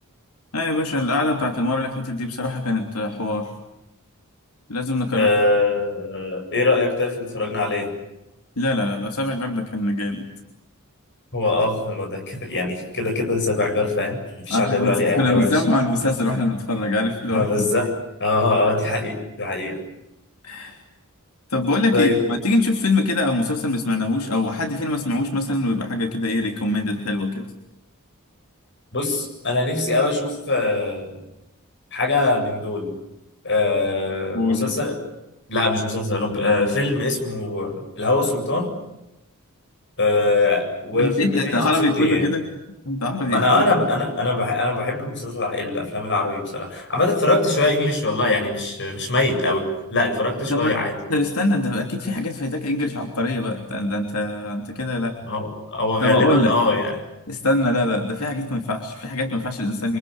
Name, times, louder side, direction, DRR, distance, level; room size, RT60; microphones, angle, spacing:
voice 1, 0.5-3.5 4.7-5.3 8.6-10.2 14.5-17.5 20.4-20.8 21.5-27.5 34.3-34.9 41.0-42.5 42.8-43.7 50.5-50.8 51.1-55.1 56.0-56.5 57.3-60.0, left 2 dB, 90° left, 3 dB, 3.2 m, -23 dB
voice 2, 5.1-7.9 11.3-14.2 14.5-15.5 17.3-17.9 18.2-19.8 21.9-22.2 28.9-31.2 31.9-32.9 33.4-35.0 35.5-38.7 40.0-42.3 43.3-50.9 55.3-57.0, left 2 dB, 55° left, 5 dB, 7.9 m, -22 dB
29.0 x 25.0 x 8.1 m, 0.93 s
head